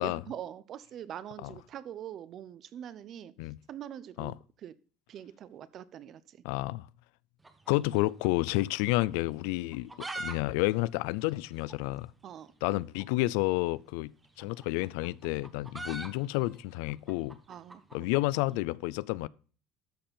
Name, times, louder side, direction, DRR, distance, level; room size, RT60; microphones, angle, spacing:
voice 1, 0.0-3.3 3.7-4.8 5.1-6.4 12.2-12.5 17.5-17.8, right 10 dB, 45° right, 0.7 m, -43 dB
voice 2, 6.4-6.9 7.7-12.1 12.6-14.1 14.4-17.4 17.9-19.3, left 20 dB, 80° left, 0.4 m, -30 dB
sound 1, 7.4-8.7 9.0-9.1 9.6-10.4 10.6-10.7 10.9-11.0 11.6-11.7 12.9-13.1 14.2-18.5, right 2 dB, 10° right, 1.2 m, -42 dB
13.0 x 4.4 x 5.2 m
cardioid pair, 130°, 0 cm